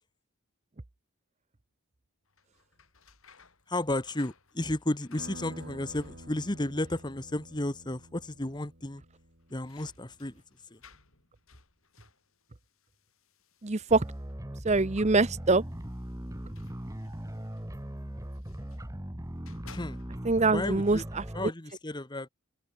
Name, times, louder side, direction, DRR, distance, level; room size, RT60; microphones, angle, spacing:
sound 1, 2.3-6.7 6.9-7.6 7.9-8.0 9.1-14.5 15.4-18.9 19.3-20.5, left 4 dB, 65° left, 7.2 m, -59 dB
voice 1, 3.7-9.0 9.5-10.4 10.7-10.8 19.7-20.0 20.5-21.0 21.3-22.3, left 1 dB, 20° left, 1.2 m, -33 dB
sound 2, 5.2-10.3, right 1 dB, 50° right, 8.0 m, -49 dB
voice 2, 13.6-14.0 14.6-15.6 20.2-21.2, right 3 dB, 30° right, 0.7 m, -24 dB
sound 3, 13.9-21.5, equal, 15° right, 1.4 m, -39 dB
head